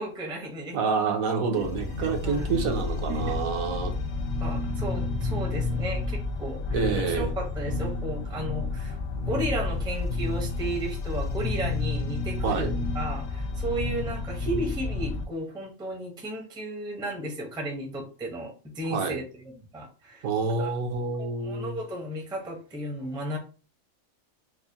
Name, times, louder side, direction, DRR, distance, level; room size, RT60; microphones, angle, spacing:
voice 1, 0.0-0.8 1.5-1.6 2.0-2.5 3.1-3.4 4.4-9.0 9.3-12.7 12.9-20.3 20.6-20.7 21.2-23.4, right 1 dB, 5° right, 1 dB, 0.5 m, -34 dB
voice 2, 0.7-3.9 6.7-7.4 12.4-12.7 18.9-19.2 20.2-21.8, right 5 dB, 75° right, 4 dB, 1.2 m, -28 dB
sound 1, 1.6-15.2, left 3 dB, 75° left, 1.0 m, -30 dB
4.8 x 2.1 x 2.7 m, 0.35 s
omnidirectional pair, 1.5 m